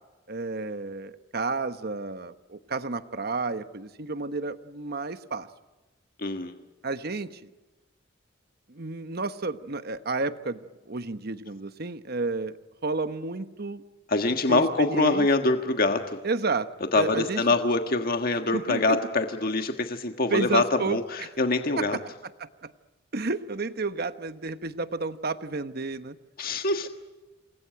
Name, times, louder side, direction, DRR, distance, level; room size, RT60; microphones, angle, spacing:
voice 1, 0.3-5.5 6.8-7.5 8.7-13.8 14.5-15.3 16.2-17.4 18.5-19.0 20.3-21.3 21.8-22.1 22.4-22.7 23.1-26.2, right 3 dB, 55° right, 11 dB, 1.1 m, -31 dB
voice 2, 6.2-6.5 14.1-16.2 16.9-20.6 20.9-22.0 26.4-26.9, left 3 dB, 50° left, 6 dB, 1.5 m, -24 dB
28.0 x 20.5 x 9.2 m, 1.2 s
head